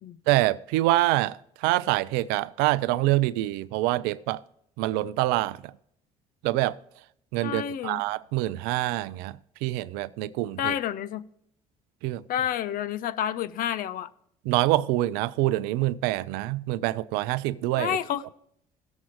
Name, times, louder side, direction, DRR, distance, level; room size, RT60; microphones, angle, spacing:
voice 1, 0.3-4.4 4.8-5.6 6.4-6.8 7.3-10.7 12.0-12.2 14.5-18.0, right 17 dB, 75° right, 0.4 m, -26 dB
voice 2, 7.4-8.0 10.6-11.2 12.3-14.1 17.8-18.2, left 10 dB, 60° left, 0.6 m, -29 dB
17.0 x 7.2 x 3.1 m
hypercardioid pair, 55°, 17 cm